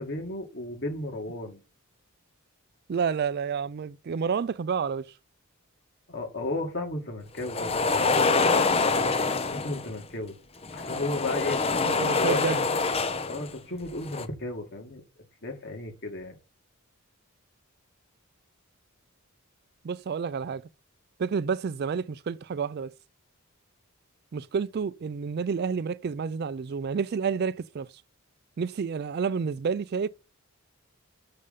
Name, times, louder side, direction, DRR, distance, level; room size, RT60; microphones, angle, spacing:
voice 1, 0.0-1.6 6.1-10.4 10.7-11.6 12.2-12.4 13.3-15.0 15.4-16.4, left 2 dB, 50° left, 2.3 m, -34 dB
voice 2, 2.9-5.1 11.8-12.6 19.8-20.7 21.2-22.9 24.3-27.9 28.6-30.1, right 6 dB, 45° right, 0.3 m, -29 dB
sound 1, 7.4-9.9 10.6-13.5 13.9-14.3, left 4 dB, 25° left, 0.6 m, -25 dB
6.6 x 5.1 x 6.8 m
head